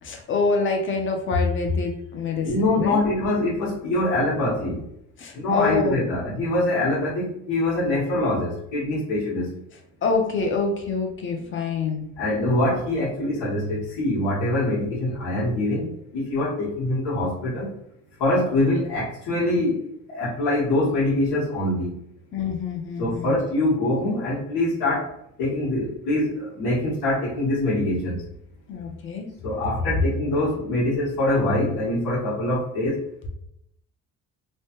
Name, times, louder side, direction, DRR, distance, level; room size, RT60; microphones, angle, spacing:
voice 1, 0.0-3.0 5.2-6.1 10.0-12.1 22.3-23.3 28.7-29.3, left 4 dB, 40° left, 2 dB, 0.7 m, -26 dB
voice 2, 2.4-4.8 5.3-9.5 12.2-17.7 18.2-21.9 23.0-25.1 25.4-28.2 29.4-33.0, left 1 dB, 90° left, -10 dB, 1.3 m, -24 dB
3.2 x 2.2 x 2.9 m, 0.76 s
cardioid pair, 130°, 32 cm